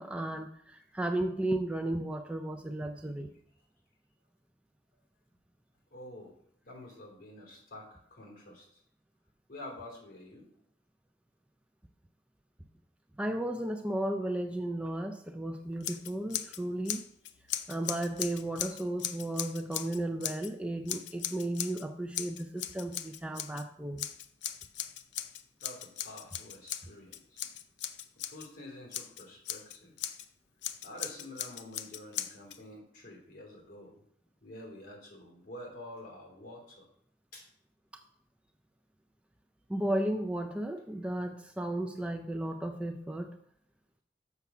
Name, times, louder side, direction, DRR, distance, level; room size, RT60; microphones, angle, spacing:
voice 1, 0.0-3.3 13.2-17.1 17.7-24.1 39.7-43.3, right 1 dB, 5° right, 5 dB, 0.3 m, -34 dB
voice 2, 5.9-6.3 6.6-8.8 9.5-10.4 25.6-27.4 28.3-29.9 30.8-34.0 34.4-36.9 37.3-37.5, left 1 dB, 50° left, 0 dB, 2.7 m, -48 dB
Scissors, 15.8-16.6 16.9-20.5 20.9-21.8 22.1-23.6 24.0-28.5 28.9-30.3 30.6-32.6, left 11 dB, 70° left, 0.5 m, -38 dB
6.9 x 5.8 x 5.9 m, 0.70 s
head